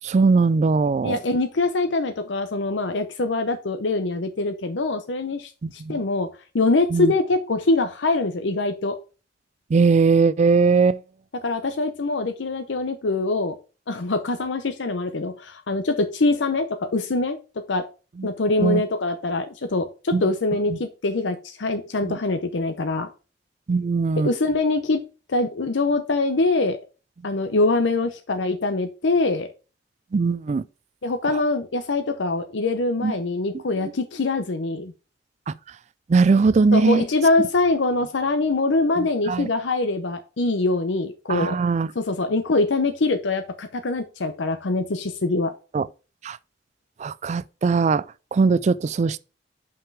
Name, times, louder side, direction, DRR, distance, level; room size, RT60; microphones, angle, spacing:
voice 1, 0.0-1.2 5.6-6.0 6.9-7.1 9.7-11.0 18.2-18.3 18.6-18.8 20.1-20.2 22.1-22.2 23.7-24.3 30.1-30.6 33.0-33.1 35.5-35.6 36.1-37.0 39.0-39.5 41.3-41.9 45.7-45.9 46.2-46.4 47.0-48.0 48.3-49.2, right 4 dB, 40° right, 0.3 m, -20 dB
voice 2, 1.0-6.3 6.5-9.0 11.4-13.6 13.9-17.4 17.7-17.8 18.2-23.1 24.2-25.0 25.3-26.8 27.2-29.5 31.0-34.9 36.7-41.6 41.9-45.5, left 3 dB, 90° left, 0.7 m, -23 dB
5.8 x 5.4 x 4.6 m
head